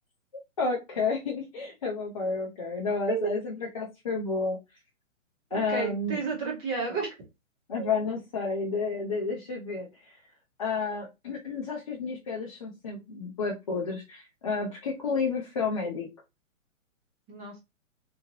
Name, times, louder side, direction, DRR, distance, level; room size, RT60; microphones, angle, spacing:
voice 1, 0.6-4.6 5.5-6.3 7.7-10.2 10.6-16.1, left 4 dB, 30° left, -2 dB, 0.4 m, -31 dB
voice 2, 5.7-7.1 7.7-7.9 17.3-17.6, right 5 dB, 15° right, -2 dB, 0.6 m, -32 dB
2.9 x 2.4 x 2.5 m, 0.24 s
figure-of-eight pair, 130°, 40 cm